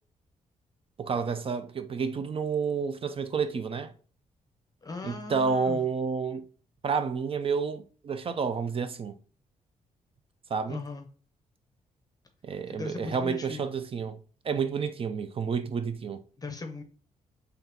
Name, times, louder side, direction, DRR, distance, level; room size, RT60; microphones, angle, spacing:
voice 1, 1.0-3.9 5.0-6.4 6.8-9.2 10.5-10.8 12.4-14.2 14.4-16.2, right 5 dB, 40° right, 0.5 m, -30 dB
voice 2, 4.8-5.8 10.7-11.1 12.7-13.7 16.4-16.8, left 3 dB, 25° left, 0.7 m, -38 dB
3.8 x 3.4 x 2.8 m
cardioid pair, 80°, 14 cm